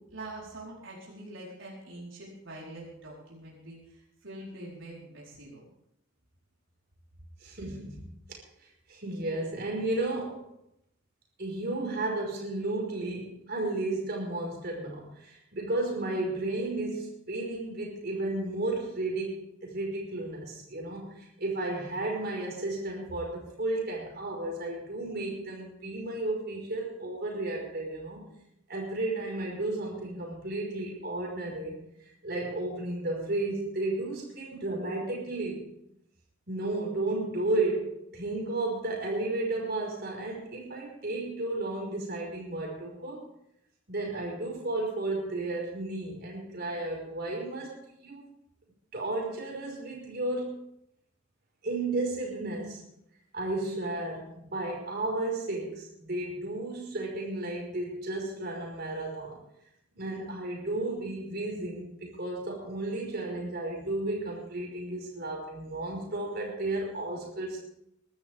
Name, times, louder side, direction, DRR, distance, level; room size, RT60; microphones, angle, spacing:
voice 1, 0.0-5.6, right 1 dB, 80° right, -5 dB, 4.4 m, -44 dB
voice 2, 7.4-8.0 8.9-10.4 11.4-28.2 28.7-35.7 36.5-43.2 43.9-47.7 48.0-48.2 48.9-50.5 51.6-52.8 53.3-59.4 60.0-67.6, right 2 dB, 55° right, -1 dB, 5.2 m, -33 dB
21.5 x 12.5 x 3.6 m, 0.78 s
head